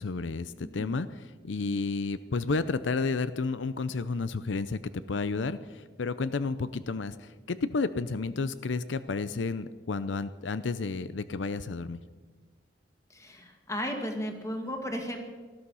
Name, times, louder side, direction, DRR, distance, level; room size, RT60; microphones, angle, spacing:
voice 1, 0.0-4.8 5.1-12.0, left 4 dB, 80° left, 14 dB, 0.6 m, -31 dB
voice 2, 0.6-0.9 13.1-15.2, equal, 15° left, 3 dB, 2.0 m, -35 dB
18.5 x 13.5 x 5.6 m, 1.4 s
head